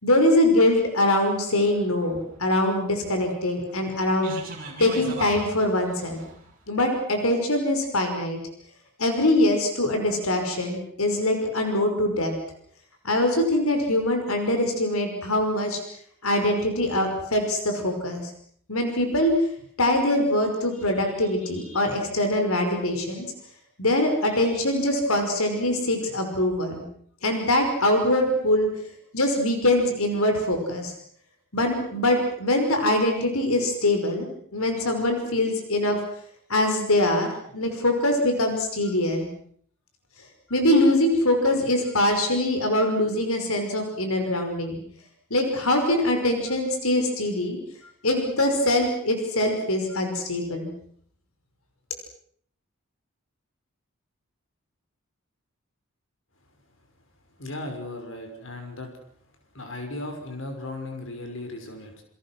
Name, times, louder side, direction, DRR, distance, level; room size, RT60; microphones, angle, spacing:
voice 1, 0.0-4.3 4.8-6.2 6.7-8.4 9.0-12.3 13.0-15.8 16.2-18.3 18.7-19.3 19.8-23.3 23.8-26.9 27.2-28.7 29.1-30.9 31.5-34.3 34.5-36.0 36.5-39.3 40.5-44.8 45.3-47.6 48.0-50.7, left 1 dB, 75° left, 5 dB, 5.5 m, -23 dB
sound 1, 1.5-6.5, right 2 dB, 40° right, 6.7 m, -40 dB
voice 2, 57.4-58.9 59.5-62.0, left 2 dB, 60° left, 4 dB, 5.9 m, -36 dB
29.0 x 26.5 x 6.3 m, 0.62 s
head